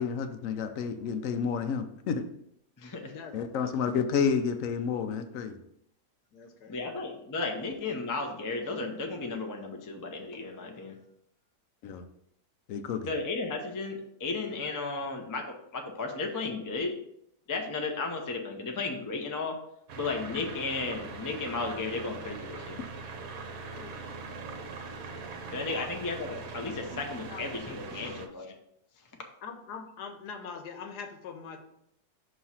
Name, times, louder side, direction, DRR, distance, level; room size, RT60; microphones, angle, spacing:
voice 1, 0.0-2.2 3.3-5.6 11.8-12.0 12.7-13.1, left 6 dB, 65° left, 8 dB, 0.9 m, -30 dB
voice 2, 2.8-3.1 6.7-11.0 13.0-17.0 17.5-19.6 20.0-22.8 25.5-28.5, left 3 dB, 25° left, 2 dB, 0.4 m, -34 dB
voice 3, 6.3-6.9 23.5-24.0 25.7-25.9 26.9-27.0 27.3-27.4 27.8-28.1 29.4-31.6, left 5 dB, 85° left, 6 dB, 1.4 m, -43 dB
sound 1, 19.9-28.3, right 4 dB, 65° right, 1.1 m, -41 dB
6.1 x 3.1 x 5.6 m, 0.75 s
omnidirectional pair, 1.7 m